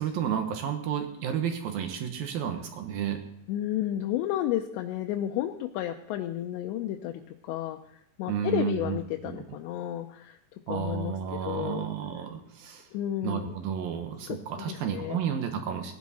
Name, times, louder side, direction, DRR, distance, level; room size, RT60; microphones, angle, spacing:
voice 1, 0.0-3.2 8.3-9.4 10.7-12.9 13.2-15.9, right 8 dB, 70° right, 6 dB, 2.4 m, -32 dB
voice 2, 3.5-7.8 8.2-10.4 10.7-11.2 11.5-11.9 12.9-13.5 14.2-15.2, left 12 dB, 80° left, 5 dB, 2.8 m, -32 dB
18.0 x 11.0 x 4.2 m, 0.77 s
omnidirectional pair, 5.4 m